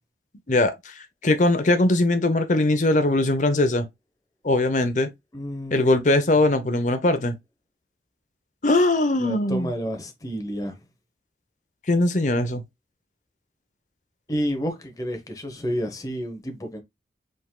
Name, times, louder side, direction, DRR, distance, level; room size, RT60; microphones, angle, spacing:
voice 1, 0.5-0.9 1.2-3.9 4.4-5.1 5.7-7.4 8.6-9.7 11.9-12.6, left 2 dB, 40° left, 0.8 m, -21 dB
voice 2, 5.3-6.0 9.2-10.7 14.3-16.8, equal, 20° left, 1.0 m, -30 dB
5.1 x 3.8 x 2.3 m
head